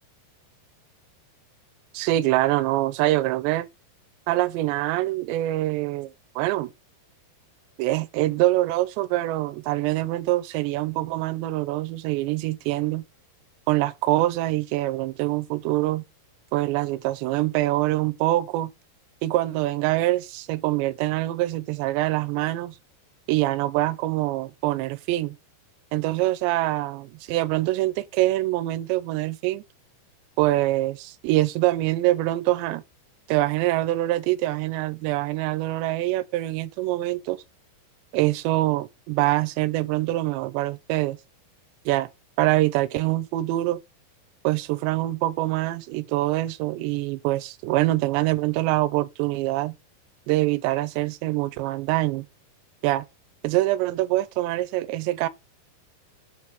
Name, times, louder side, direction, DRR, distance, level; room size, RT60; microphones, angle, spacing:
voice 1, 1.9-3.7 4.3-6.7 7.8-13.1 13.7-16.0 16.5-18.7 19.2-22.8 23.3-25.4 25.9-29.6 30.4-32.8 33.3-37.4 38.1-41.2 41.9-42.1 42.4-43.8 44.4-49.8 50.3-52.3 52.8-53.1 53.4-55.3, right 17 dB, 80° right, 2.7 m, -24 dB
7.9 x 4.6 x 5.0 m
omnidirectional pair, 5.3 m